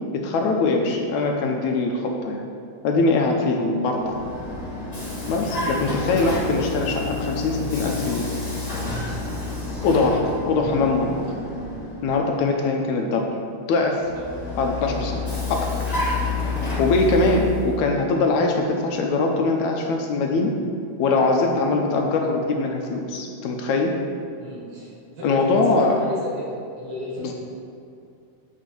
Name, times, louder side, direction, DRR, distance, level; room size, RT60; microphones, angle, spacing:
voice 1, 0.1-2.5 2.8-4.2 5.3-8.3 9.8-10.2 10.5-11.3 12.0-13.3 13.5-14.0 14.6-15.2 15.5-15.7 16.8-20.6 21.0-24.0 25.2-26.0, left 3 dB, 75° left, 2 dB, 1.9 m, -22 dB
Vehicle, 3.8-12.3 14.0-17.8, left 3 dB, 40° left, 0.5 m, -29 dB
voice 2, 21.0-21.3 24.4-27.3, left 1 dB, 55° right, -5 dB, 2.3 m, -34 dB
8.3 x 4.7 x 5.1 m, 2.4 s
omnidirectional pair, 3.5 m